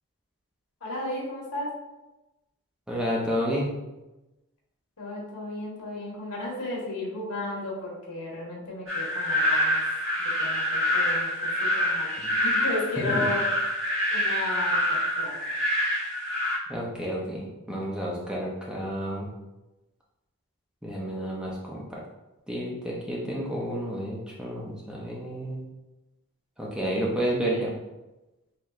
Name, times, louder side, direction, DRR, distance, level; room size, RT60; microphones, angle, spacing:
voice 1, 0.8-1.7 5.0-9.8 10.4-12.1 12.4-13.4 14.1-15.4, left 2 dB, 80° left, -4 dB, 1.3 m, -34 dB
voice 2, 2.9-3.7 13.1-13.3 16.7-19.3 20.8-22.0 22.5-25.6 26.6-27.7, equal, 5° right, -4 dB, 0.5 m, -30 dB
sound 1, 8.9-16.6, left 1 dB, 60° right, 1.2 m, -26 dB
4.3 x 3.0 x 2.4 m, 1.0 s
head